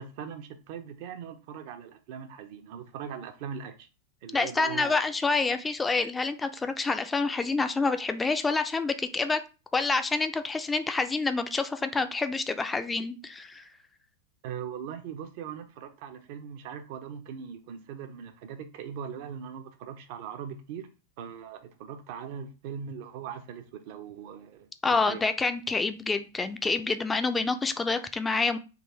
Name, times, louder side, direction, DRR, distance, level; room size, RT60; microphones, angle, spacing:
voice 1, 0.0-3.9 4.2-5.0 14.4-20.9 21.2-25.2, right 7 dB, 50° right, 0.6 m, -40 dB
voice 2, 4.3-9.4 9.7-13.6 24.8-28.6, left 3 dB, 10° left, 0.4 m, -27 dB
3.7 x 2.5 x 3.0 m
figure-of-eight pair, 90°, 0 cm